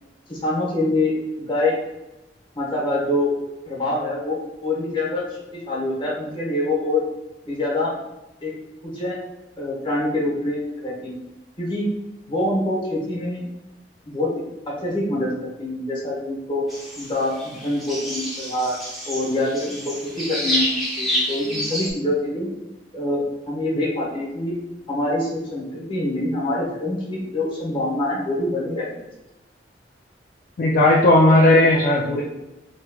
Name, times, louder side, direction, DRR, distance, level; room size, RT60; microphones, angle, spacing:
voice 1, 0.3-1.8 2.5-3.3 3.7-7.0 7.4-7.9 8.4-8.5 8.8-9.2 9.6-11.2 11.6-11.9 12.3-13.4 14.0-14.3 14.7-16.6 16.9-18.8 19.0-22.5 22.9-24.5 24.9-28.9, left 1 dB, 30° left, -5 dB, 1.1 m, -25 dB
sound 1, 16.7-21.9, equal, ahead, 0.9 m, -28 dB
voice 2, 30.6-32.2, left 1 dB, 50° left, -2 dB, 0.3 m, -15 dB
3.1 x 2.9 x 2.3 m, 0.98 s
head